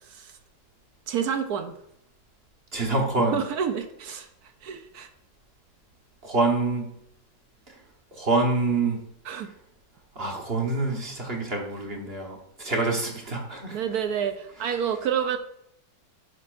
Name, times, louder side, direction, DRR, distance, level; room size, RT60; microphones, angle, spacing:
voice 1, 0.0-0.3 1.1-1.8 3.3-4.3 4.6-5.1 9.2-9.5 13.7-15.4, right 8 dB, 70° right, 8 dB, 0.9 m, -29 dB
voice 2, 2.7-3.4 6.2-6.9 7.7-7.8 8.1-9.0 10.1-13.8, right 3 dB, 35° right, 1 dB, 1.2 m, -26 dB
11.0 x 6.8 x 2.6 m, 0.74 s
omnidirectional pair, 2.2 m